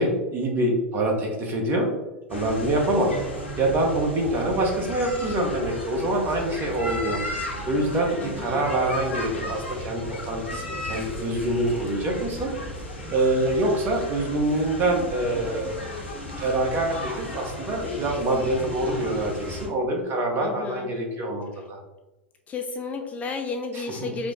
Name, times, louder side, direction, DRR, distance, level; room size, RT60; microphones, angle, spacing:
voice 1, 0.0-1.9 2.3-3.1 3.6-7.2 7.7-12.5 13.1-15.7 16.4-21.8 23.7-24.1, right 1 dB, 35° right, 2 dB, 1.0 m, -25 dB
sound 1, 2.3-19.7, left 1 dB, 85° left, 1.1 m, -35 dB
voice 2, 8.2-8.7 20.4-20.9 21.5-21.6 22.5-24.3, left 4 dB, 25° left, 4 dB, 0.4 m, -32 dB
4.9 x 2.1 x 3.7 m, 1.0 s
figure-of-eight pair, 85°, 6 cm